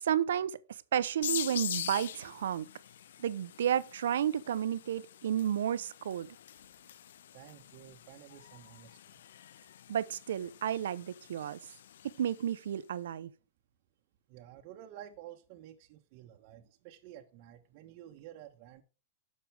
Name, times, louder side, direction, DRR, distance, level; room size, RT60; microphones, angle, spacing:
voice 1, 0.0-2.7 3.2-6.3 9.9-11.6 12.0-13.3, right 9 dB, 80° right, 0.8 m, -32 dB
sound 1, 1.2-12.6, left 10 dB, 80° left, 0.4 m, -44 dB
voice 2, 7.3-9.0 14.3-18.8, right 11 dB, 45° right, 1.2 m, -51 dB
10.5 x 6.8 x 3.4 m
hypercardioid pair, 145°, 0 cm